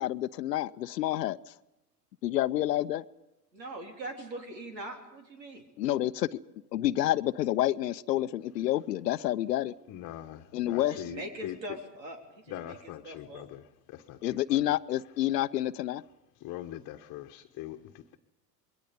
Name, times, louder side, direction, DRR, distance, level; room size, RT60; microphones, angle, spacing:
voice 1, 0.0-1.4 2.2-3.0 5.8-6.4 6.7-9.7 10.5-11.0 14.2-16.0, left 14 dB, 75° left, 14 dB, 0.7 m, -28 dB
voice 2, 3.5-5.6 10.7-13.5, right 1 dB, 85° right, 4 dB, 3.8 m, -42 dB
voice 3, 9.9-11.6 12.5-14.6 16.4-18.2, left 13 dB, 40° left, 4 dB, 1.2 m, -42 dB
27.0 x 22.0 x 5.3 m, 0.95 s
hypercardioid pair, 85°, 49 cm